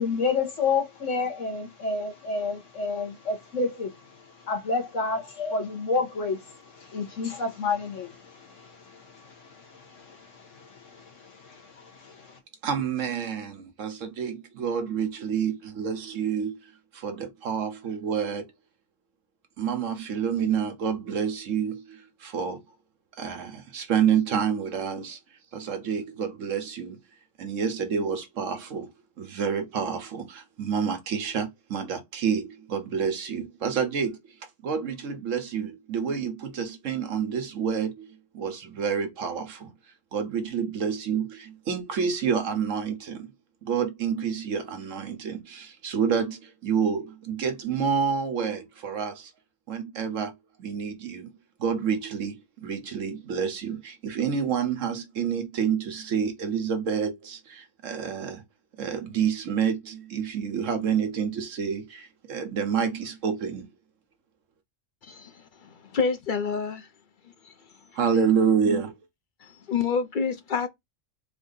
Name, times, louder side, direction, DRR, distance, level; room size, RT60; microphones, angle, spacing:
voice 1, 0.0-12.4, left 4 dB, 80° left, 1.7 m, -30 dB
voice 2, 12.6-18.5 19.6-22.6 23.2-25.2 25.5-27.0 27.4-28.9 29.2-38.1 38.3-39.7 40.1-43.3 43.6-49.3 49.7-50.3 50.6-51.3 51.6-58.4 58.8-63.7 67.9-68.9, right 7 dB, 85° right, 1.3 m, -28 dB
voice 3, 65.0-66.9 67.4-67.5 69.4-70.7, left 5 dB, 50° left, 0.7 m, -28 dB
4.2 x 2.7 x 3.9 m
omnidirectional pair, 1.3 m